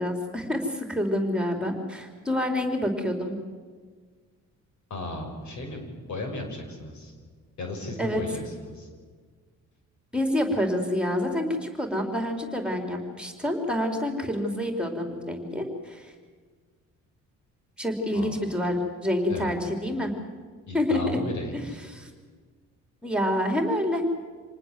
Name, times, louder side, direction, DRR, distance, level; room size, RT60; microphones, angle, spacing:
voice 1, 0.0-3.4 8.0-8.2 10.1-16.1 17.8-20.1 20.7-21.0 21.5-21.6 21.9-22.1 23.0-24.0, left 1 dB, 5° right, 4 dB, 4.1 m, -27 dB
voice 2, 4.9-7.1 7.6-8.9 18.1-18.3 19.3-19.5 20.7-21.8, left 2 dB, 70° left, 4 dB, 6.5 m, -35 dB
27.0 x 19.5 x 7.7 m, 1.5 s
cardioid pair, 90°, 30 cm